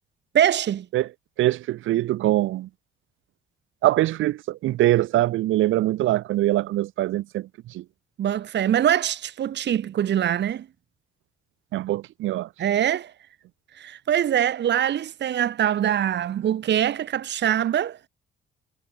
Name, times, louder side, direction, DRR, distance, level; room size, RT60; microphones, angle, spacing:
voice 1, 0.3-0.8 8.2-10.6 12.6-13.1 13.7-18.0, right 10 dB, 60° right, 1.7 m, -23 dB
voice 2, 1.4-2.7 3.8-7.8 11.7-12.5, right 15 dB, 85° right, 2.7 m, -23 dB
cardioid pair, 90°, 20 cm